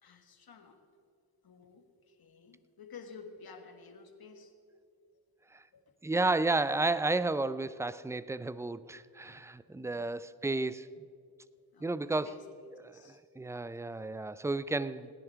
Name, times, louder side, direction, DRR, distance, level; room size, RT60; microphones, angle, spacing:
voice 1, 0.0-0.8 1.4-4.5 5.7-6.0 9.6-10.1 11.5-12.4 12.9-13.2, left 5 dB, 55° left, 6 dB, 1.6 m, -53 dB
voice 2, 6.0-10.9 11.8-12.3 12.9-15.1, right 2 dB, 5° right, 16 dB, 0.4 m, -32 dB
18.5 x 10.0 x 4.6 m, 2.3 s
cardioid pair, 60°, 43 cm